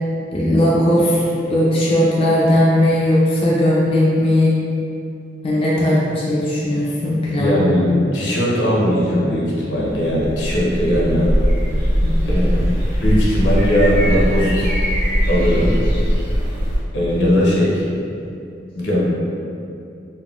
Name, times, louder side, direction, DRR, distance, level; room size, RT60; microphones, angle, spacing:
voice 1, 0.3-4.5 5.4-7.6 12.0-12.4, left 1 dB, 30° left, -6 dB, 0.4 m, -17 dB
voice 2, 7.4-7.9 8.1-11.3 12.3-12.7 13.0-14.7 15.3-15.8 16.9-17.8 18.8-19.1, equal, 80° left, -6 dB, 0.7 m, -18 dB
sound 1, 10.0-16.8, equal, 40° right, 1.2 m, -19 dB
3.5 x 2.2 x 2.3 m, 2.6 s
head